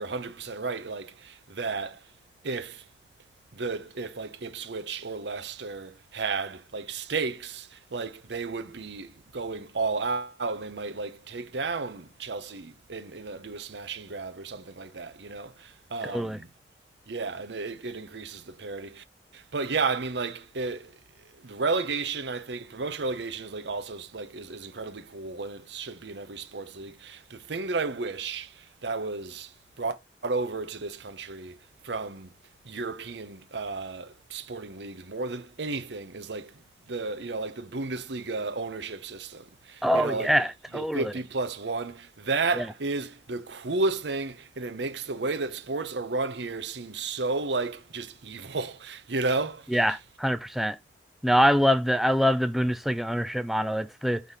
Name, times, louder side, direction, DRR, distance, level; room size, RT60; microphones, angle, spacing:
voice 1, 0.0-2.0 2.4-2.8 3.5-16.5 17.1-19.0 19.3-20.9 21.4-29.5 29.8-30.0 30.2-31.6 31.8-32.3 32.6-36.5 36.9-40.5 40.7-50.0, right 3 dB, 70° right, 0.8 m, -33 dB
voice 2, 16.0-16.4 39.8-41.0 42.6-42.7 49.7-50.8 51.2-54.2, equal, ahead, 0.3 m, -24 dB
5.7 x 3.6 x 4.7 m
head